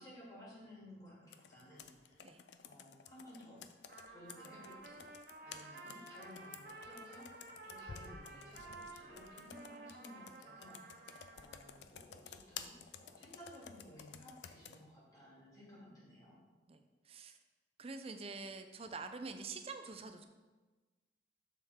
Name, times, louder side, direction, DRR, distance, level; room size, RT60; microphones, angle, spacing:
voice 1, 0.0-2.2 2.6-3.7 4.1-5.1 5.4-7.3 7.6-16.4, left 1 dB, 20° left, -8 dB, 2.5 m, -56 dB
Computer keyboard, 1.3-14.8, left 7 dB, 80° left, 0.4 m, -54 dB
Trumpet, 3.9-11.8, right 3 dB, 55° right, 0.8 m, -53 dB
voice 2, 16.7-17.4 17.8-20.3, right 4 dB, 35° right, 8 dB, 0.5 m, -46 dB
6.8 x 6.5 x 3.6 m, 1.3 s
head